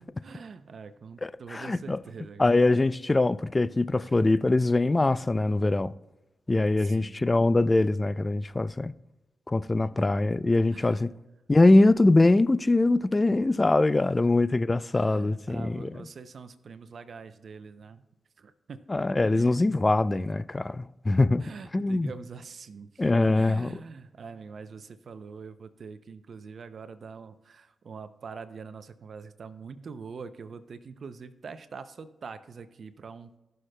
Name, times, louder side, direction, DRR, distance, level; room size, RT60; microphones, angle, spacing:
voice 1, 0.2-2.8 4.0-4.2 6.8-7.2 9.8-9.9 10.7-11.0 14.9-18.0 18.4-18.8 19.3-19.5 21.4-33.4, right 5 dB, 65° right, 0.5 m, -44 dB
voice 2, 1.2-2.0 2.4-5.9 6.5-8.9 9.5-11.1 11.5-15.9 18.9-21.4 21.7-22.1 23.0-23.8, left 2 dB, 25° left, 0.3 m, -23 dB
19.0 x 6.4 x 2.2 m
cardioid pair, 75°, 0 cm